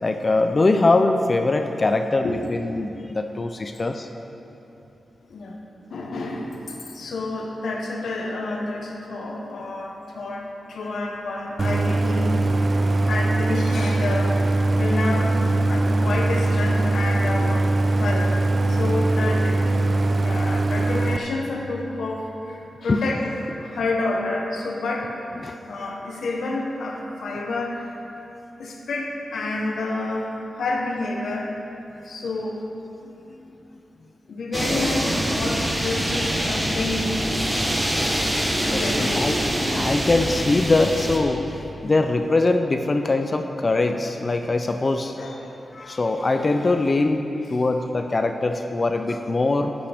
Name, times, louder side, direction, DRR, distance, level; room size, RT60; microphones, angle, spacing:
voice 1, 0.0-4.1 20.3-20.4 22.9-23.1 25.4-25.6 33.3-33.5 38.7-39.4 39.8-41.4 41.8-45.2 45.7-49.7, left 2 dB, 30° left, 6 dB, 0.4 m, -22 dB
voice 2, 5.9-12.3 13.1-15.4 15.7-17.7 17.9-19.6 20.2-23.3 23.6-25.2 25.7-27.9 28.6-31.6 32.0-32.6 34.3-37.2 38.6-39.3 39.6-39.9 45.2-45.5, left 2 dB, 80° left, 0 dB, 1.1 m, -29 dB
Idling, 11.6-21.2, right 2 dB, 35° right, 0.3 m, -21 dB
sound 1, 34.5-41.2, equal, 10° right, 0.9 m, -24 dB
11.5 x 8.6 x 3.4 m, 3.0 s
wide cardioid pair, 135°, 0 cm